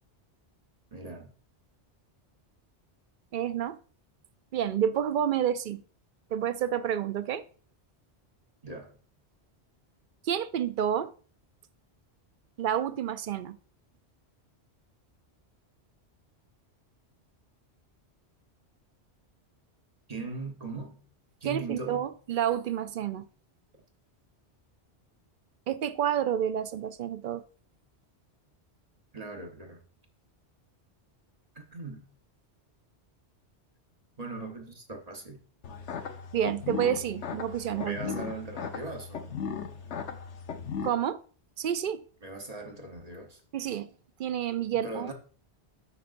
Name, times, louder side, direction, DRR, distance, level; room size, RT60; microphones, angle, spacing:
voice 1, 0.9-1.3 8.6-9.0 20.1-21.0 21.4-22.1 29.1-29.8 31.5-32.1 34.2-35.4 37.8-39.4 42.2-43.4 44.7-45.1, right 3 dB, 35° right, 1.2 m, -39 dB
voice 2, 3.3-3.8 4.5-5.8 6.3-7.4 10.2-11.1 12.6-13.6 21.4-23.2 25.7-27.4 36.3-38.0 40.8-41.2 41.6-42.0 43.5-43.9 44.2-45.1, right 9 dB, 60° right, 0.6 m, -29 dB
sound 1, 35.6-40.9, left 6 dB, 85° left, 1.1 m, -37 dB
9.6 x 6.6 x 2.6 m
omnidirectional pair, 1.1 m